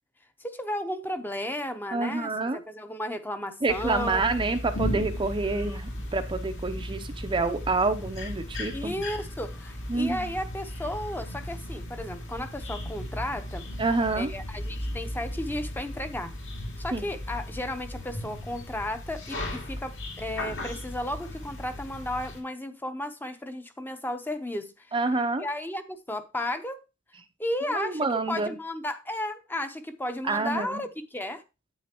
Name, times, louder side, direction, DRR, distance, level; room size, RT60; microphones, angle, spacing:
voice 1, 0.4-4.3 8.7-13.6 14.2-16.3 16.8-24.9 25.4-26.8 27.4-31.4, left 1 dB, 10° left, 0.9 m, -34 dB
voice 2, 1.9-2.6 3.6-8.9 9.9-10.3 13.8-14.3 16.9-17.0 24.9-25.5 27.7-28.5 30.3-30.8, right 3 dB, 25° right, 0.7 m, -28 dB
sound 1, 3.7-22.4, left 1 dB, 65° left, 2.8 m, -36 dB
9.3 x 8.7 x 2.9 m
head